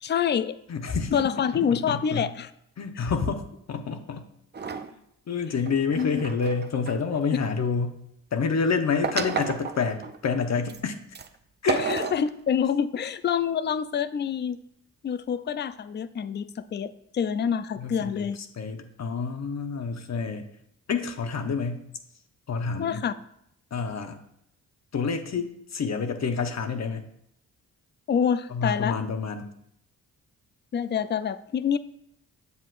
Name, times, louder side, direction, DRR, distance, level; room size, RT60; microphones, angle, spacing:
voice 1, 0.0-0.6 1.1-2.5 3.0-3.1 6.0-6.2 11.9-14.6 15.0-18.4 22.8-23.1 28.1-29.0 30.7-31.8, left 7 dB, 30° left, 14 dB, 0.4 m, -27 dB
voice 2, 0.7-1.3 1.7-2.3 2.8-4.3 4.9-5.0 5.3-8.0 8.3-10.9 11.6-12.1 17.8-20.5 20.9-21.8 22.5-23.0 23.7-24.2 24.9-27.1 28.5-29.5, left 5 dB, 50° left, 7 dB, 0.9 m, -28 dB
sound 1, 4.5-4.9 5.6-7.5 9.0-10.2 10.7-10.8 11.1-11.3 11.7-12.3, right 5 dB, 30° right, 0.5 m, -31 dB
8.1 x 7.4 x 2.5 m, 0.76 s
cardioid pair, 65°, 35 cm